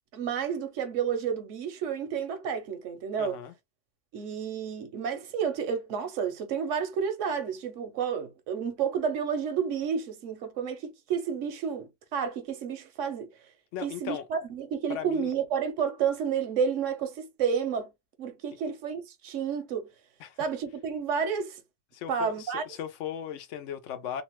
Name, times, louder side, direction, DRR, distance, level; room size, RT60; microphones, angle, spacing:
voice 1, 0.1-3.4 4.1-13.3 13.8-17.9 18.2-19.9 20.4-21.6 22.1-22.6, right 7 dB, 85° right, 1.1 m, -30 dB
voice 2, 3.2-3.5 13.7-14.2 14.9-15.3 20.2-20.4 21.9-24.2, left 9 dB, 80° left, 0.9 m, -37 dB
2.8 x 2.1 x 2.9 m
omnidirectional pair, 1.2 m